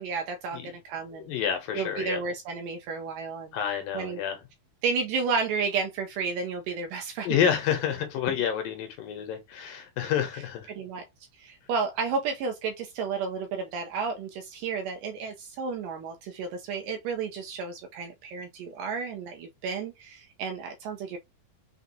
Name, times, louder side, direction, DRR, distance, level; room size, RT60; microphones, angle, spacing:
voice 1, 0.0-1.3 1.8-3.6 3.9-4.2 4.8-7.3 10.7-11.0 11.4-21.2, right 5 dB, 80° right, 2.0 m, -32 dB
voice 2, 1.1-2.2 3.5-4.4 7.2-10.7, left 8 dB, 75° left, 2.2 m, -29 dB
5.9 x 2.3 x 2.7 m
omnidirectional pair, 4.3 m